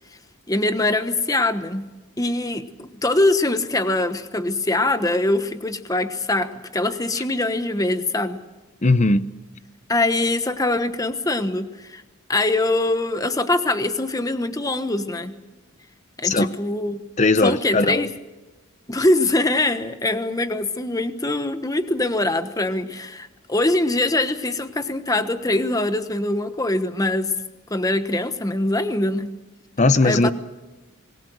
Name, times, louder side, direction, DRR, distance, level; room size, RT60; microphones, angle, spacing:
voice 1, 0.5-1.9 2.2-8.4 9.9-12.0 12.3-15.4 16.2-17.0 17.4-18.1 18.9-27.3 27.7-29.3 30.0-30.3, left 2 dB, 15° left, 1.1 m, -23 dB
voice 2, 8.8-9.3 16.2-16.5 17.2-18.1 29.8-30.3, left 2 dB, 35° left, 0.8 m, -18 dB
26.0 x 20.0 x 6.4 m
head